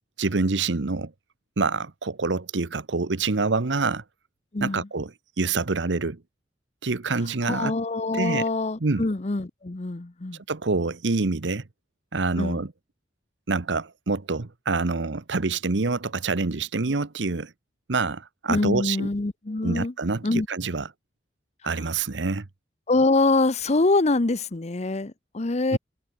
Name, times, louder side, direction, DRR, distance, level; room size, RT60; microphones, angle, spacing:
voice 1, 0.2-1.1 1.6-4.0 4.6-5.1 5.4-6.2 6.8-7.7 8.1-8.4 8.8-9.0 10.5-11.6 12.1-12.7 13.5-17.5 17.9-19.1 19.6-20.9 21.6-22.5 25.7-25.8, right 3 dB, 90° right, 1.0 m, -26 dB
voice 2, 4.5-4.9 7.4-10.4 12.4-12.6 18.5-19.9 20.2-20.5 22.9-25.8, left 3 dB, 40° left, 0.8 m, -24 dB
head